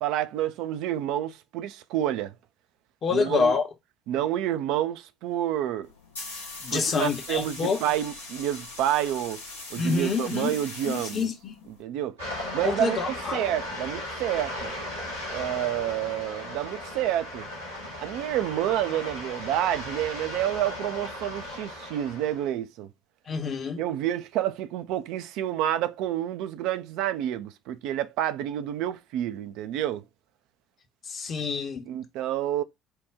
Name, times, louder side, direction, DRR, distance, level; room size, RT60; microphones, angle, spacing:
voice 1, 0.0-2.3 3.1-3.5 4.1-5.9 6.7-9.4 9.7-11.3 11.8-12.2 12.5-13.0 13.3-14.7 15.3-17.5 18.0-22.9 23.8-30.0 31.9-32.6, right 12 dB, 60° right, 0.3 m, -29 dB
voice 2, 3.0-3.7 6.6-7.8 9.8-10.5 10.8-11.5 12.6-13.5 17.8-17.9 23.3-23.8 31.1-31.8, left 5 dB, 40° left, 0.9 m, -27 dB
sound 1, 5.8-11.8, left 2 dB, 80° left, 0.8 m, -41 dB
sound 2, 12.2-22.5, left 1 dB, 90° right, 2.4 m, -36 dB
4.6 x 2.2 x 3.4 m
figure-of-eight pair, 55°, 0 cm